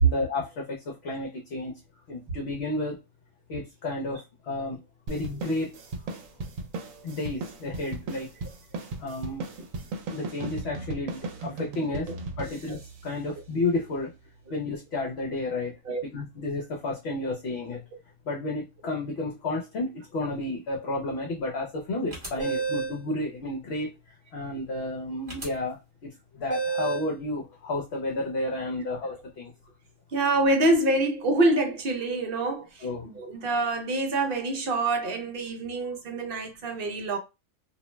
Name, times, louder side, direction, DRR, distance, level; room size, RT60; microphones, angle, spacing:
voice 1, 0.0-1.7 2.1-3.0 3.5-4.8 5.1-5.8 7.0-8.3 9.0-9.5 10.1-12.1 12.4-14.1 14.5-15.7 16.0-17.8 18.3-23.9 24.3-26.1 26.3-29.5 32.8-33.1, left 2 dB, 60° left, 0.8 m, -31 dB
sound 1, 5.1-13.9, right 3 dB, 80° right, 1.0 m, -37 dB
sound 2, 22.1-23.0 25.3-25.5 26.5-27.1, right 4 dB, 25° right, 0.9 m, -30 dB
voice 2, 30.1-32.7 33.1-37.2, right 2 dB, 55° right, 0.8 m, -26 dB
2.5 x 2.1 x 3.0 m
omnidirectional pair, 1.4 m